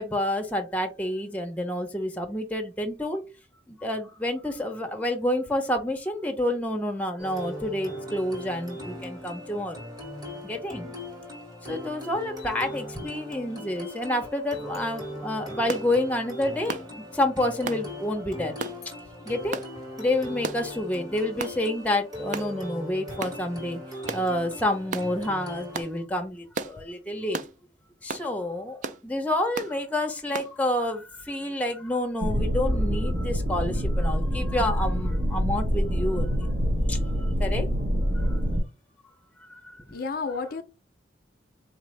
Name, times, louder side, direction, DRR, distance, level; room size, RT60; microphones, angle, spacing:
voice 1, 0.0-3.2 3.7-9.8 10.4-10.9 11.7-18.5 18.8-18.9 19.3-19.6 20.0-27.4 28.0-36.5 36.9-37.7 38.2-38.4 39.4-39.8, left 1 dB, 10° left, 0.6 m, -29 dB
sound 1, 7.2-25.8, left 1 dB, 20° right, 1.4 m, -39 dB
sound 2, 15.7-15.9 16.7-16.9 17.7-17.8 18.6-18.8 19.5-19.7 20.4-20.7 21.4-21.6 22.3-22.5 23.2-23.4 24.1-24.3 24.9-25.1 25.7-25.9 26.5-26.8 27.3-27.5 28.1-28.3 28.8-29.0 29.5-29.7 30.3-30.5, right 4 dB, 40° right, 0.3 m, -33 dB
sound 3, 32.2-38.6, equal, 70° right, 1.2 m, -26 dB
voice 2, 39.9-40.6, left 4 dB, 50° left, 0.4 m, -32 dB
4.2 x 2.6 x 3.2 m
head